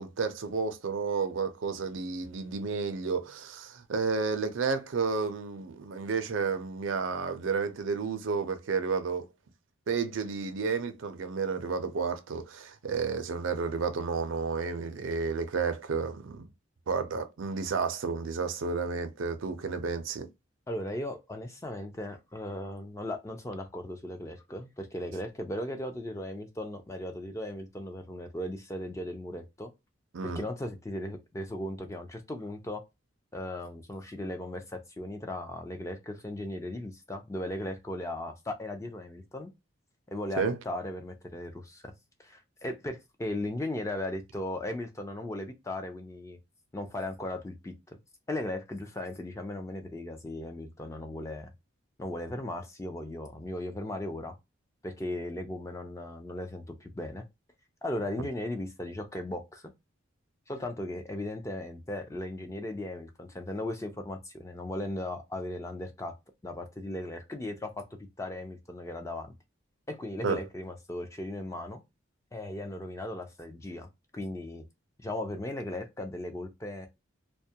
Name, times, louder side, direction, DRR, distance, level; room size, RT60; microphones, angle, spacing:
voice 1, 0.0-9.3 9.9-16.5 16.9-20.3 30.1-30.4 40.4-40.6 70.2-70.4, right 5 dB, 70° right, 0.4 m, -31 dB
voice 2, 20.7-29.7 30.2-32.8 33.3-39.5 40.1-41.9 42.2-46.4 46.7-48.0 48.3-51.5 52.0-54.3 54.8-57.2 57.8-59.7 60.5-66.1 66.4-67.8 68.2-69.3 69.9-71.8 72.3-74.6 75.0-76.9, left 1 dB, 15° left, 0.3 m, -37 dB
2.2 x 2.1 x 2.7 m
head